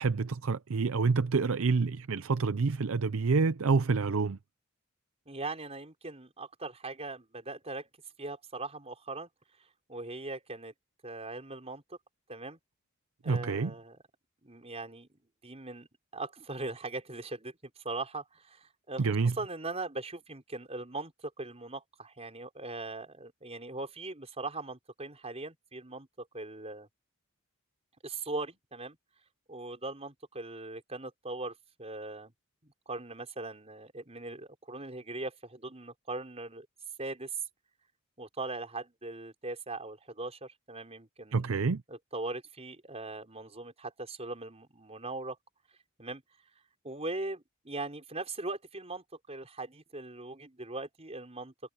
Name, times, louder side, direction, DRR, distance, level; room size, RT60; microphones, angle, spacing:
voice 1, 0.0-4.4 13.3-13.7 19.0-19.3 41.3-41.8, right 4 dB, 65° right, 0.6 m, -27 dB
voice 2, 5.3-7.9 8.2-9.3 9.9-10.7 11.0-11.8 12.3-12.6 13.2-14.0 14.4-15.1 15.4-15.9 16.1-17.5 17.8-21.1 21.4-26.9 28.0-29.0 29.5-32.3 32.6-36.7 37.0-37.3 38.2-41.5 41.9-45.4 46.0-46.2 46.8-51.5, right 2 dB, 30° right, 4.9 m, -40 dB
head